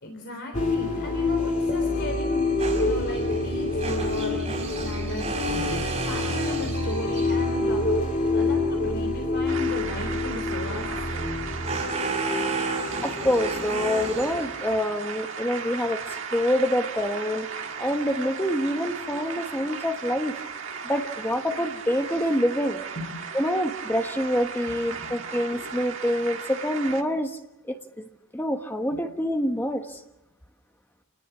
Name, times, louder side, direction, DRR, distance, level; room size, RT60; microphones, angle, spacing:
voice 1, 0.0-11.5 23.0-23.1 24.9-25.2, left 1 dB, 50° left, 2 dB, 3.6 m, -36 dB
sound 1, 0.5-11.8, left 2 dB, 35° left, 3.1 m, -26 dB
sound 2, 2.6-7.5 10.6-14.8, right 2 dB, 25° right, 6.2 m, -32 dB
sound 3, 9.5-27.0, right 6 dB, 60° right, 1.8 m, -36 dB
voice 2, 13.0-16.0 16.3-17.5 17.8-20.4 20.8-22.8 23.3-27.4 27.7-30.0, equal, 10° left, 5 dB, 1.3 m, -26 dB
28.0 x 19.5 x 7.3 m, 0.95 s
head